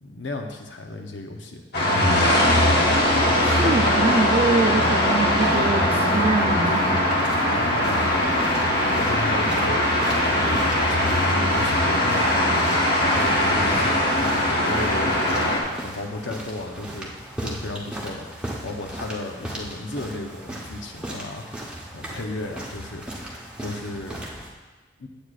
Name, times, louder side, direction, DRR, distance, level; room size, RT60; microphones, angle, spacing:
voice 1, 0.0-1.6 7.5-8.6 8.9-12.7 13.0-23.0 23.6-24.2 25.0-25.1, left 2 dB, 80° left, 3 dB, 0.9 m, -34 dB
sound 1, 1.7-15.6, left 1 dB, 60° left, 1.3 m, -21 dB
voice 2, 3.4-6.9, right 3 dB, 30° right, 5 dB, 0.5 m, -24 dB
sound 2, 5.0-24.5, right 1 dB, 5° right, 1.0 m, -37 dB
8.5 x 8.1 x 2.5 m, 1.2 s
head